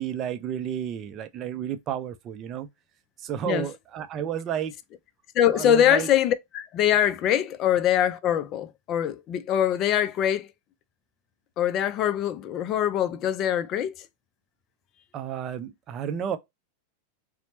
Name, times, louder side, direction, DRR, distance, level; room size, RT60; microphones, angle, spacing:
voice 1, 0.0-2.7 3.2-4.7 5.5-6.1 15.1-16.4, right 9 dB, 30° right, 0.5 m, -31 dB
voice 2, 5.3-10.5 11.6-14.1, left 10 dB, 35° left, 0.4 m, -23 dB
4.1 x 2.1 x 2.8 m
figure-of-eight pair, 90°, 0 cm